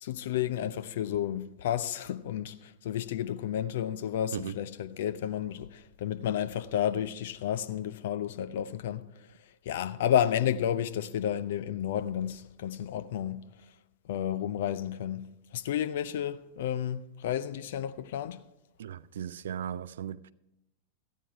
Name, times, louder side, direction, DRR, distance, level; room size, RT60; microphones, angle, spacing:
voice 1, 0.0-9.0 9.7-13.4 14.1-15.3 15.5-18.4, left 10 dB, 55° left, 0.5 m, -31 dB
voice 2, 18.8-20.3, right 9 dB, 60° right, 0.3 m, -37 dB
14.0 x 9.2 x 4.6 m
figure-of-eight pair, 90°, 0 cm